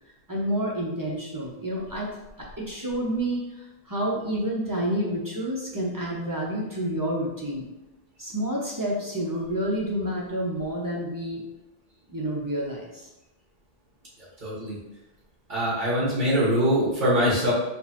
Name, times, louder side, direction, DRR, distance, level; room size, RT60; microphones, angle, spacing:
voice 1, 0.3-2.1 2.4-7.6 8.2-11.4 12.1-13.1, right 1 dB, 25° right, -4 dB, 0.6 m, -29 dB
voice 2, 14.4-14.8 15.5-17.5, equal, 45° right, -8 dB, 1.8 m, -23 dB
4.3 x 3.1 x 2.9 m, 0.97 s
omnidirectional pair, 1.1 m